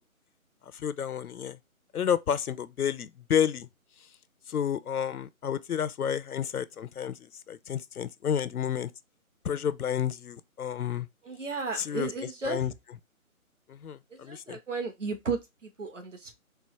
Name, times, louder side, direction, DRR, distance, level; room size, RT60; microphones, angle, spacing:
voice 1, 0.7-1.6 1.9-3.7 4.5-7.2 7.5-8.9 9.4-11.1 11.8-12.1 12.5-12.7 13.7-14.6, left 8 dB, 80° left, 0.6 m, -30 dB
voice 2, 11.2-12.7 14.1-16.3, right 4 dB, 55° right, 1.3 m, -34 dB
4.4 x 2.0 x 4.4 m
hypercardioid pair, 175°, 44 cm